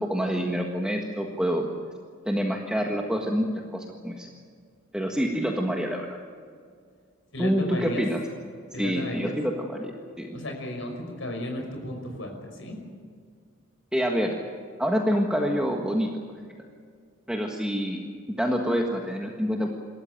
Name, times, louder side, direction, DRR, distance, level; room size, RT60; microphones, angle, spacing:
voice 1, 0.0-1.7 2.2-4.3 4.9-6.1 7.4-8.2 8.8-9.9 10.2-10.3 13.9-14.3 14.8-16.1 17.3-18.0 18.4-19.7, equal, 5° right, 0 dB, 1.6 m, -26 dB
voice 2, 7.3-8.0 8.7-9.4 10.3-12.8, left 1 dB, 75° left, 3 dB, 5.7 m, -34 dB
27.5 x 14.0 x 9.1 m, 2.1 s
head